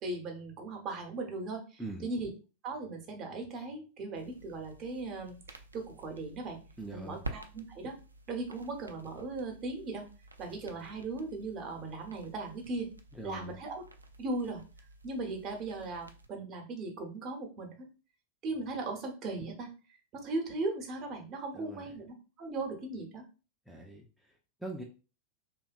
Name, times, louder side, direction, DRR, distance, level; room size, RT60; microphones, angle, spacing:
voice 1, 0.0-2.3 2.6-6.6 6.9-8.0 8.3-10.0 10.4-12.9 13.2-13.8 14.2-14.6 15.0-17.7 18.4-19.7 20.1-23.2, right 3 dB, 35° right, 3 dB, 0.7 m, -38 dB
sound 1, 4.1-16.3, right 2 dB, 80° right, 0.3 m, -50 dB
voice 2, 6.8-7.2 13.1-13.6 21.5-22.0 23.7-24.8, right 2 dB, ahead, -1 dB, 0.4 m, -43 dB
2.7 x 2.2 x 2.4 m, 0.33 s
figure-of-eight pair, 90°, 0 cm